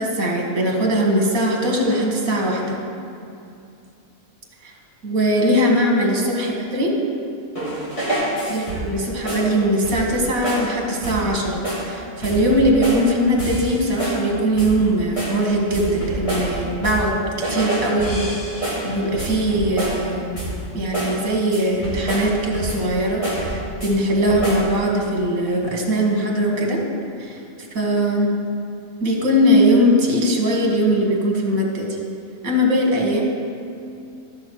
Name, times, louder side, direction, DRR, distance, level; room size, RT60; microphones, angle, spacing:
voice 1, 0.0-2.7 4.6-4.7 5.0-6.9 8.5-17.1 17.5-18.6 18.8-20.4 20.7-26.8 27.2-27.4 27.7-28.3 29.0-32.0 32.4-33.2, equal, 80° right, 0 dB, 2.0 m, -20 dB
sound 1, 7.6-9.0 9.3-9.5 9.8-10.2 10.4-10.7 11.0-11.3 11.6-11.9 12.2-13.1 13.4-14.3 14.6-14.8 15.2-17.1 17.4-20.1 20.4-20.7 20.9-21.2 21.5-22.9 23.2-23.9 24.3-24.7, right 1 dB, 25° left, 2.5 m, -27 dB
13.5 x 6.8 x 4.6 m, 2.6 s
omnidirectional pair, 1.4 m